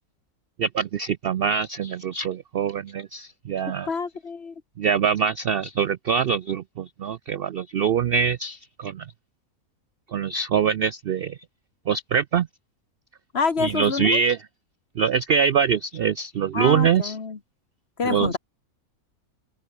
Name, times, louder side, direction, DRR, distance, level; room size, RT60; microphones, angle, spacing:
voice 1, 0.6-3.9 4.8-9.1 10.1-11.4 11.9-12.5 13.6-14.4 15.0-17.1 18.1-18.4, right 7 dB, 65° right, 0.5 m, -24 dB
voice 2, 3.9-4.6 13.3-14.2 16.5-17.4 18.0-18.4, left 5 dB, 45° left, 1.7 m, -27 dB
open air
omnidirectional pair, 1.5 m